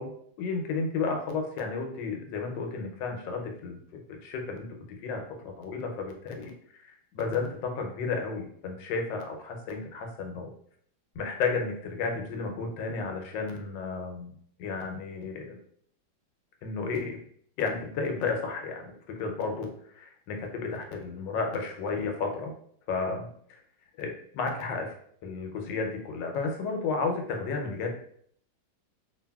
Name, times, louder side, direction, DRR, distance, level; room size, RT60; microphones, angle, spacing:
voice 1, 0.0-4.6 5.0-6.5 6.8-10.5 11.1-15.6 16.6-17.1 17.6-22.5 22.9-23.6 24.0-24.9 25.2-27.9, left 4 dB, 85° left, 3 dB, 1.3 m, -33 dB
2.8 x 2.6 x 2.2 m, 0.62 s
omnidirectional pair, 1.9 m